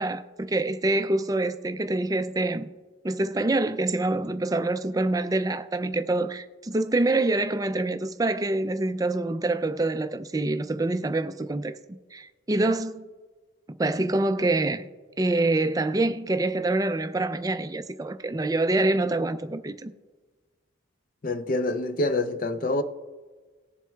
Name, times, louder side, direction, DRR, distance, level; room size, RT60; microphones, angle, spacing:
voice 1, 0.0-2.7 3.0-11.8 12.1-13.0 13.7-14.9 15.2-19.9, right 2 dB, 15° right, 0.3 m, -26 dB
voice 2, 21.2-22.8, left 2 dB, 45° left, 0.5 m, -26 dB
19.0 x 7.5 x 2.3 m
head